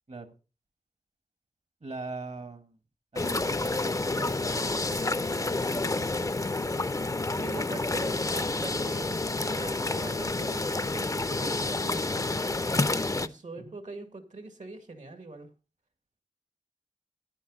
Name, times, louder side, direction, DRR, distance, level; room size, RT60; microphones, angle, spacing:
voice 1, 1.8-2.8 3.1-4.6 5.4-5.8 13.5-13.8, right 3 dB, 60° right, 10 dB, 1.3 m, -41 dB
sound 1, 3.2-13.3, left 2 dB, 25° left, 0.5 m, -29 dB
voice 2, 7.2-12.4 13.2-15.5, right 2 dB, 80° right, 7 dB, 1.9 m, -43 dB
11.0 x 9.9 x 3.8 m, 0.33 s
wide cardioid pair, 75°, 12 cm